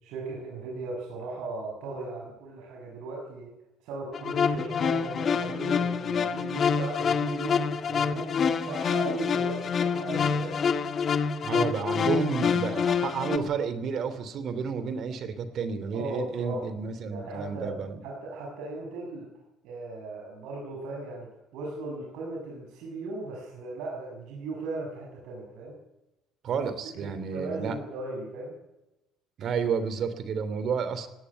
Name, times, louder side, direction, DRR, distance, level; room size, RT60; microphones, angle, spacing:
voice 1, 0.0-3.6 3.8-10.6 15.9-16.6 17.1-17.7 18.0-19.3 19.6-21.3 21.5-25.8 26.5-26.6 27.0-28.5, right 2 dB, 80° right, -1 dB, 6.7 m, -37 dB
sound 1, 4.1-13.4, left 6 dB, 40° left, 1.8 m, -27 dB
voice 2, 11.4-18.0 26.4-27.8 29.4-31.1, right 5 dB, 50° right, 12 dB, 2.8 m, -31 dB
18.0 x 18.0 x 9.8 m, 0.95 s
cardioid pair, 130°, 0 cm